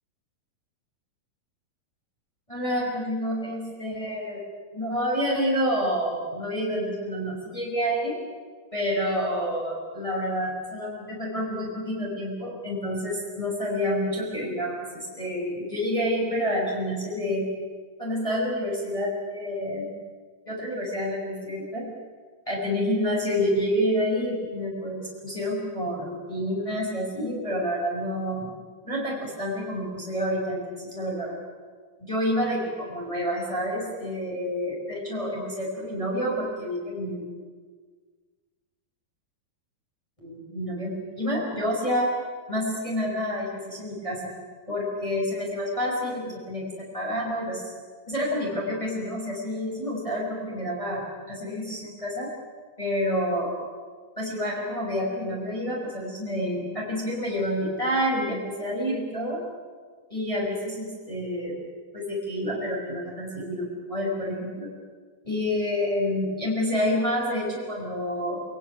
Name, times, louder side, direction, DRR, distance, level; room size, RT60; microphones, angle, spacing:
voice 1, 2.5-4.4 4.7-8.2 8.7-17.5 18.0-19.9 20.5-21.9 22.5-28.5 28.8-31.3 32.0-37.2 40.2-42.1 42.5-44.3 44.7-47.7 48.1-52.3 52.8-53.6 54.2-59.4 60.1-61.6 61.9-64.7 65.2-68.4, equal, 10° left, -3 dB, 5.6 m, -28 dB
27.0 x 18.5 x 9.6 m, 1.5 s
omnidirectional pair, 4.4 m